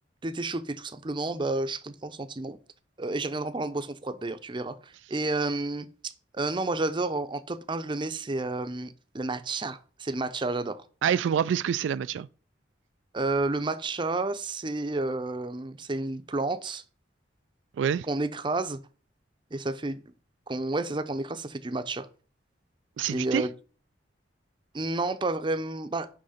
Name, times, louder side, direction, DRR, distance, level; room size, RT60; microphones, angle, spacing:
voice 1, 0.2-2.6 3.0-10.9 13.1-16.8 18.0-18.8 19.5-20.0 20.5-22.1 23.1-23.5 24.7-26.1, right 2 dB, 25° right, 0.6 m, -31 dB
voice 2, 11.0-12.3 17.8-18.1 23.0-23.5, right 8 dB, 80° right, 0.3 m, -26 dB
6.4 x 5.4 x 5.7 m
head